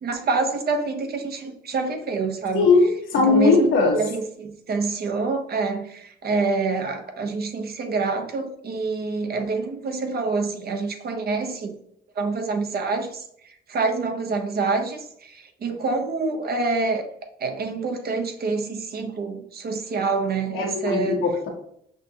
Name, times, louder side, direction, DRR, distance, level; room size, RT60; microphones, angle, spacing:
voice 1, 0.0-2.7 3.1-3.7 3.9-11.7 12.2-17.1 17.4-21.2, right 4 dB, 50° right, 5 dB, 0.8 m, -27 dB
voice 2, 2.5-4.0 20.5-21.5, left 4 dB, 85° left, 0 dB, 1.3 m, -19 dB
5.8 x 2.6 x 2.8 m, 0.70 s
cardioid pair, 90°, 20 cm